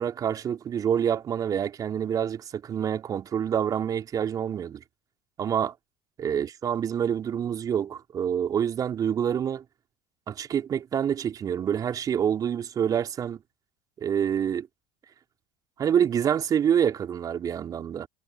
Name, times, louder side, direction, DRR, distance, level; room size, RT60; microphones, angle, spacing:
voice 1, 0.0-4.8 5.4-5.7 6.2-9.6 10.3-13.4 14.0-14.7 15.8-18.1, right 8 dB, 35° right, 3.7 m, -27 dB
figure-of-eight pair, 70°, 11 cm